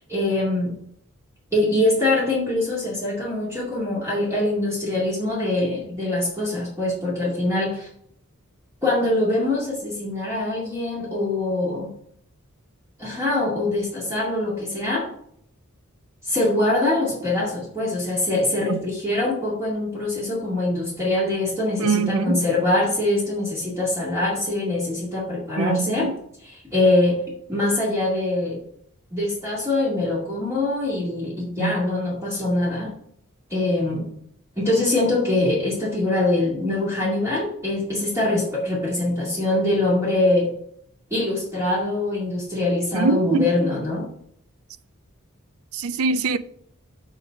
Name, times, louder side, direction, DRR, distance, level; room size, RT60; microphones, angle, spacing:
voice 1, 0.1-0.7 1.5-7.9 8.8-11.9 13.0-15.1 16.2-26.1 26.7-27.2 27.5-28.6 29.1-32.9 33.5-34.1 34.6-40.5 41.1-44.1, left 2 dB, 15° right, 2.2 m, -23 dB
voice 2, 21.8-22.4 25.6-26.1 31.6-31.7 42.9-43.5 45.7-46.4, right 4 dB, 85° right, 0.5 m, -23 dB
7.9 x 4.0 x 6.2 m
head